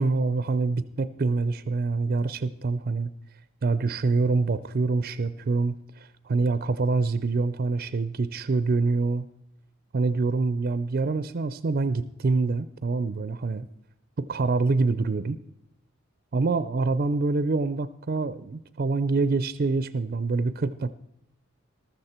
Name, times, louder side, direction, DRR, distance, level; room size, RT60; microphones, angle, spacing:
voice 1, 0.0-3.1 3.6-9.3 9.9-13.7 14.2-15.4 16.3-20.9, right 3 dB, 45° right, 14 dB, 0.4 m, -26 dB
14.5 x 12.5 x 4.3 m, 0.82 s
head